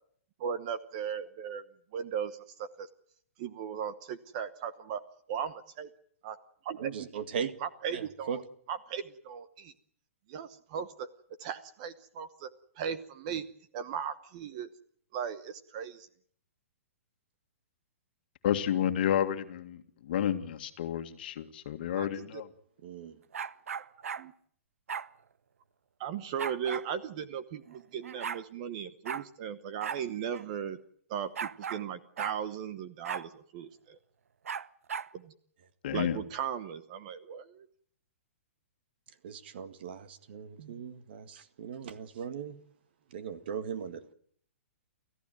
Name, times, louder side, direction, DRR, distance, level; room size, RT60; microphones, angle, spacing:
voice 1, 0.4-1.6 1.9-2.9 3.4-5.0 5.3-5.9 6.2-6.4 6.6-7.1 7.6-8.4 8.7-9.7 10.3-11.1 11.4-12.5 12.7-13.5 13.7-14.7 15.1-16.1 22.0-22.4 24.2-24.3 26.0-30.8 31.1-34.0 35.1-35.3 35.9-37.7, right 8 dB, 30° right, 1.0 m, -37 dB
voice 2, 6.8-7.5 7.9-8.4 22.8-23.2 39.2-42.6 43.1-44.1, right 7 dB, 45° right, 1.9 m, -38 dB
voice 3, 18.4-19.8 20.1-22.4 35.8-36.2, left 10 dB, 45° left, 2.0 m, -30 dB
sound 1, 23.3-24.2 24.9-25.1 26.4-26.9 27.7-27.8 28.0-28.4 29.1-29.3 29.8-30.0 30.3-30.4 31.4-31.8 32.2-32.4 33.0-33.3 34.5-35.1, right 7 dB, 85° right, 1.0 m, -37 dB
29.5 x 14.5 x 9.2 m
hypercardioid pair, 170°, 7 cm